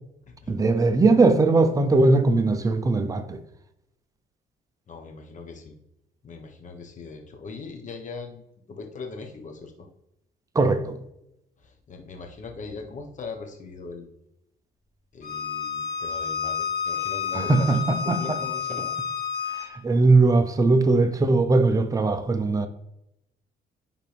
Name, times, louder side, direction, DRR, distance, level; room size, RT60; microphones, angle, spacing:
voice 1, 0.5-3.4 10.5-11.0 17.3-18.4 19.5-22.7, right 3 dB, 20° right, 0.7 m, -20 dB
voice 2, 4.9-5.7 6.2-8.4 8.7-9.9 11.6-14.1 15.1-17.7 18.0-18.9, left 4 dB, 45° left, 1.3 m, -40 dB
Bowed string instrument, 15.2-19.7, left 7 dB, 60° left, 2.1 m, -30 dB
10.5 x 3.7 x 3.5 m
cardioid pair, 100°, 18 cm